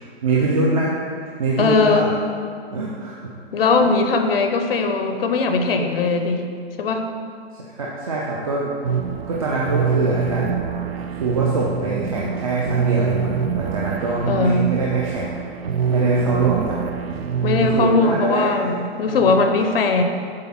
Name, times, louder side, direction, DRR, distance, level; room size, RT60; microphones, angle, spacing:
voice 1, 0.2-0.9 1.2-2.1 2.7-3.3 3.8-3.9 7.6-8.7 9.3-10.5 11.0-15.4 15.9-16.8 17.1-17.2 17.6-18.7 19.1-19.4, right 3 dB, 35° right, -4 dB, 0.6 m, -24 dB
voice 2, 1.6-2.1 3.5-6.5 6.8-7.0 14.3-14.7 17.4-20.0, left 3 dB, 65° left, 5 dB, 0.7 m, -19 dB
sound 1, 8.8-17.8, right 6 dB, 70° right, 0.7 m, -24 dB
7.6 x 4.0 x 5.9 m, 2.2 s
hypercardioid pair, 180°, 32 cm